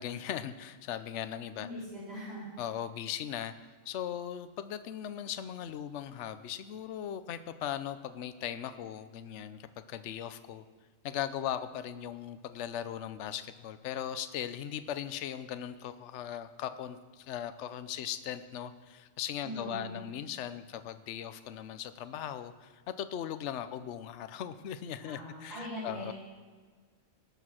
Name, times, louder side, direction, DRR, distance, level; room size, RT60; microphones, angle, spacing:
voice 1, 0.0-1.7 2.6-3.5 3.9-10.6 11.0-26.1, left 10 dB, 65° left, 11 dB, 0.9 m, -38 dB
voice 2, 1.6-2.5 19.4-20.1 25.0-26.1, equal, 45° right, -10 dB, 4.9 m, -41 dB
18.0 x 7.0 x 6.3 m, 1.5 s
omnidirectional pair, 1.4 m